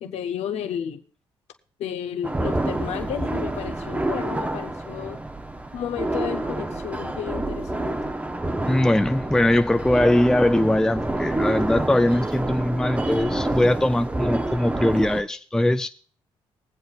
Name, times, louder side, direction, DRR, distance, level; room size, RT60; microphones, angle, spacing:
voice 1, 0.0-1.0 1.8-5.2 5.7-7.9, left 9 dB, 80° left, 0.8 m, -32 dB
sound 1, 2.2-15.2, right 2 dB, 15° right, 0.7 m, -28 dB
voice 2, 8.6-15.9, left 1 dB, 5° left, 0.4 m, -21 dB
21.5 x 7.7 x 2.5 m
cardioid pair, 75°, 11 cm